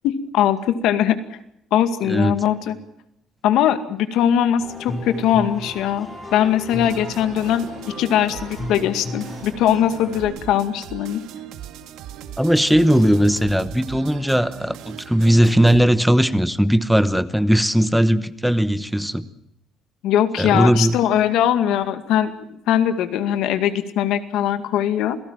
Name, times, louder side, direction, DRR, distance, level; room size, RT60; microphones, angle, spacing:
voice 1, 0.0-1.2 1.7-2.8 3.4-7.7 8.0-11.2 20.0-22.4 22.7-25.2, left 10 dB, 85° left, 10 dB, 2.2 m, -20 dB
voice 2, 2.0-2.4 12.4-19.2 20.4-21.0, equal, ahead, 13 dB, 1.0 m, -18 dB
sound 1, 4.6-10.2, left 1 dB, 25° left, 7.3 m, -34 dB
sound 2, 6.7-15.8, right 10 dB, 90° right, 1.8 m, -39 dB
28.0 x 17.5 x 7.5 m, 0.79 s
cardioid pair, 155°, 0 cm